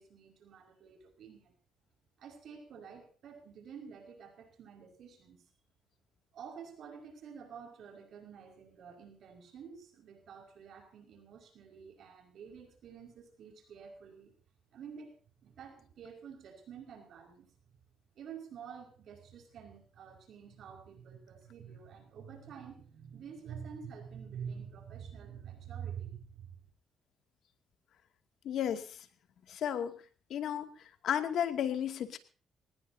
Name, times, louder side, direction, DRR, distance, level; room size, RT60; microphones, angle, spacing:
voice 1, 0.0-1.5 2.2-5.4 6.3-14.3 14.7-15.2 15.4-17.5 18.2-26.6, right 7 dB, 70° right, 4 dB, 5.4 m, -48 dB
voice 2, 28.4-28.9 29.5-29.9 30.3-30.7 31.0-32.2, left 9 dB, 70° left, 7 dB, 2.4 m, -33 dB
21.5 x 19.5 x 2.8 m, 0.39 s
cardioid pair, 90°, 0 cm